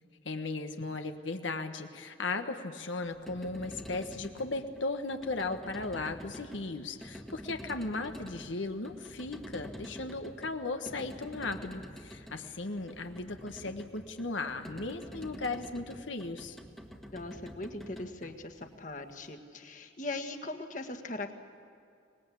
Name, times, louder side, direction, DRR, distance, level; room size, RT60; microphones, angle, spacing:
voice 1, 0.2-16.6, left 3 dB, 85° left, 6 dB, 1.4 m, -36 dB
sound 1, 3.0-19.2, equal, ahead, 1.5 m, -48 dB
voice 2, 17.1-21.3, left 2 dB, 40° left, 5 dB, 1.7 m, -40 dB
25.0 x 20.0 x 8.5 m, 2.5 s
head